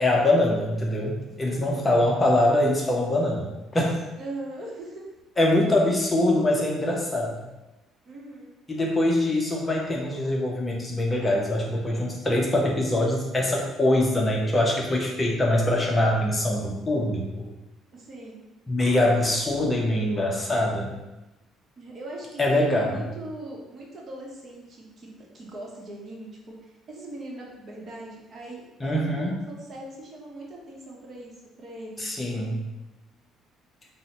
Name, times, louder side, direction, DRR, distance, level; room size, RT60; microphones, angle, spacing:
voice 1, 0.0-3.5 3.7-4.0 5.4-7.4 8.7-17.5 18.7-20.9 22.4-23.0 28.8-29.3 32.0-32.6, left 1 dB, 20° left, -1 dB, 0.5 m, -23 dB
voice 2, 4.2-5.0 8.1-8.6 17.9-18.4 21.8-32.0, right 1 dB, 40° right, -2 dB, 0.8 m, -40 dB
2.7 x 2.0 x 4.0 m, 1.0 s
cardioid pair, 110°, 0 cm